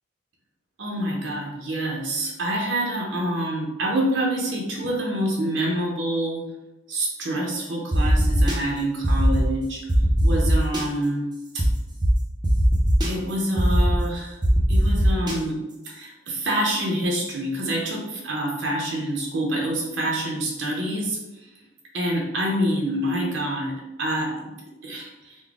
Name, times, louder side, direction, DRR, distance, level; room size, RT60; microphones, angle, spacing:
voice 1, 0.8-6.4 6.9-9.8 10.2-11.3 11.5-11.6 13.1-14.4 14.7-15.6 15.8-21.5 21.9-24.5 24.8-25.4, right 1 dB, 65° right, -2 dB, 0.8 m, -27 dB
sound 1, 7.9-8.6 9.0-9.4 9.9-10.8 11.6-11.7 12.0-12.1 12.4-13.1 13.6-14.0 14.4-15.3, equal, 20° right, 0.5 m, -19 dB
3.9 x 2.2 x 3.5 m, 1.0 s
head